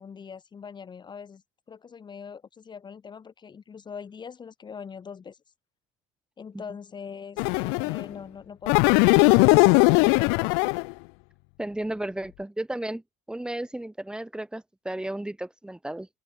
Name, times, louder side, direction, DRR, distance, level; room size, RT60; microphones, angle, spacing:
voice 1, 0.0-1.4 1.7-5.4 6.4-10.7, left 6 dB, 20° left, 3.4 m, -42 dB
sound 1, 7.4-8.0 8.7-10.9, left 39 dB, 75° left, 0.5 m, -19 dB
voice 2, 11.6-13.0 13.3-16.1, right 1 dB, 5° right, 7.2 m, -33 dB
open air
cardioid pair, 160°, 20 cm